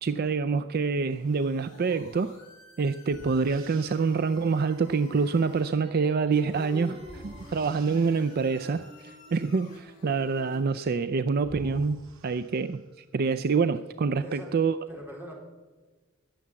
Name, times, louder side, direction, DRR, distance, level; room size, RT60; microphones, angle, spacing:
voice 1, 0.0-2.3 2.8-14.7, right 4 dB, 50° right, 12 dB, 0.4 m, -26 dB
sound 1, 1.1-5.7 6.5-10.7, left 3 dB, 40° left, 6.4 m, -54 dB
sound 2, 2.3-2.4 3.1-4.3 7.0-8.6 10.8-10.9 11.4-13.0, right 1 dB, 85° right, 1.8 m, -49 dB
Singing, 5.8-11.1, equal, 25° right, 1.8 m, -47 dB
voice 2, 14.2-14.6 14.9-15.3, equal, 10° right, -1 dB, 3.9 m, -41 dB
20.5 x 7.1 x 7.5 m, 1.3 s
head